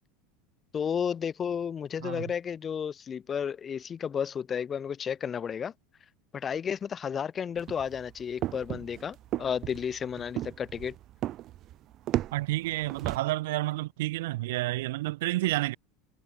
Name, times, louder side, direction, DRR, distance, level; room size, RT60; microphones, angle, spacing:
voice 1, 0.7-5.7 6.3-10.9, left 7 dB, 20° left, 1.3 m, -32 dB
voice 2, 2.0-2.3 12.3-15.8, right 18 dB, 80° right, 1.3 m, -30 dB
sound 1, 7.6-13.2, right 13 dB, 35° right, 0.6 m, -35 dB
supercardioid pair, 165°, 0 cm